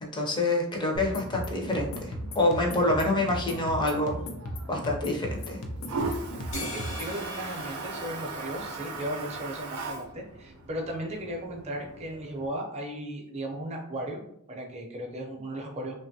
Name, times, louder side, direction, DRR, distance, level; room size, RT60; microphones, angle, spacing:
voice 1, 0.0-4.2 4.7-5.6, left 2 dB, 20° left, 0 dB, 0.5 m, -27 dB
Toilet flush, 0.9-12.5, right 3 dB, 80° right, 0.5 m, -40 dB
sound 1, 1.0-7.2, equal, 85° left, 0.5 m, -36 dB
voice 2, 6.3-14.2 14.5-16.0, right 1 dB, 30° right, 0 dB, 0.5 m, -36 dB
sound 2, 6.5-9.2, left 1 dB, 60° left, 0.9 m, -41 dB
2.9 x 2.2 x 2.7 m, 0.72 s
head